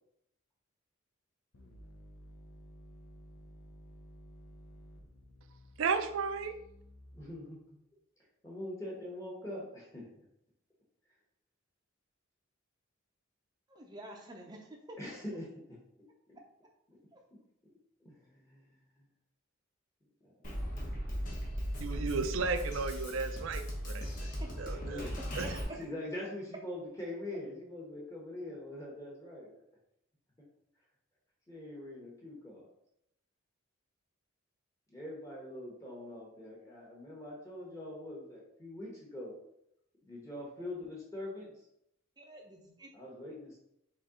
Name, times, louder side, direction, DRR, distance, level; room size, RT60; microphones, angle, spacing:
sound 1, 1.5-7.5, equal, 80° left, 0.8 m, -54 dB
voice 1, 5.8-6.5 21.8-24.3 24.6-25.0 25.4-25.5, right 5 dB, 65° right, 9 dB, 0.4 m, -34 dB
voice 2, 7.1-7.6 8.4-10.1 15.0-15.8 16.3-16.4 18.0-19.1 20.2-20.3 24.4-25.1 25.6-29.6 30.4-30.5 31.5-32.7 34.9-39.3 40.0-41.5 42.9-43.6, left 1 dB, 15° left, -3 dB, 1.0 m, -43 dB
voice 3, 13.7-15.0 17.1-17.2 24.4-24.5 25.4-25.5 42.2-42.9, right 1 dB, 20° right, 1 dB, 0.6 m, -48 dB
Drum kit, 20.4-25.6, equal, 35° left, 1.0 m, -37 dB
4.2 x 3.2 x 3.7 m, 0.78 s
head